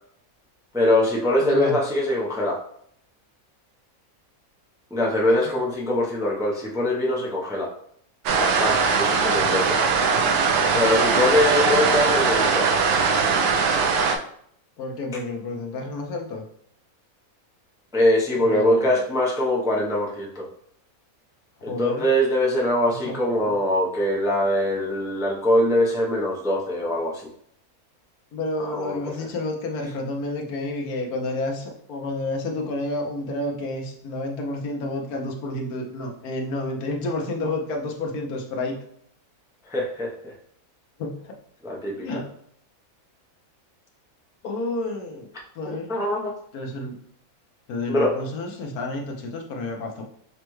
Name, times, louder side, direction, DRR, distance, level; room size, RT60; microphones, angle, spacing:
voice 1, 0.7-2.6 4.9-7.7 8.3-9.8 10.7-12.7 17.9-20.5 21.6-27.3 28.6-29.0 39.7-40.3 41.6-42.1 45.6-46.3 47.9-48.1, left 1 dB, 5° right, -2 dB, 0.4 m, -23 dB
voice 2, 1.4-1.8 5.4-5.5 9.3-9.5 14.8-16.4 18.4-19.0 21.6-22.1 23.1-23.5 28.3-38.8 41.0-41.3 42.0-42.2 44.4-45.3 45.6-45.9 46.5-46.9 47.7-50.0, left 2 dB, 90° left, 1 dB, 1.3 m, -30 dB
sound 1, 8.3-14.2, right 5 dB, 90° right, 1.1 m, -20 dB
6.5 x 2.2 x 3.1 m, 0.66 s
omnidirectional pair, 1.5 m